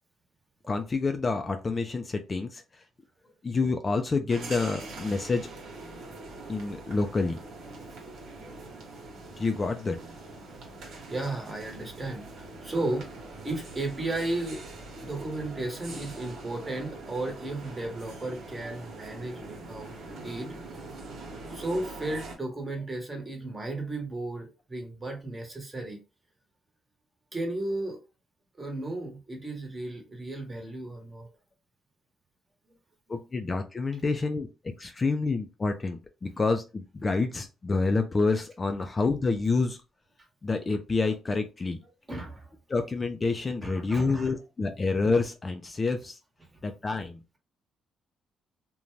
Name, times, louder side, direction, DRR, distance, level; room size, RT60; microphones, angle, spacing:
voice 1, 0.7-2.6 3.4-5.5 6.5-7.4 9.4-10.0 33.1-34.5 34.8-39.8 40.4-41.8 42.7-46.2 46.6-47.4, left 3 dB, 30° left, 0.4 m, -28 dB
sound 1, 4.3-22.4, right 2 dB, 75° right, 1.0 m, -43 dB
voice 2, 7.8-8.2 10.8-13.1 13.4-14.6 15.0-19.9 20.2-20.8 21.5-26.0 27.3-28.0 28.6-31.3 42.1-42.5 43.6-44.3 46.5-46.6, right 2 dB, 25° right, 1.0 m, -34 dB
2.5 x 2.2 x 3.1 m
cardioid pair, 90°, 0 cm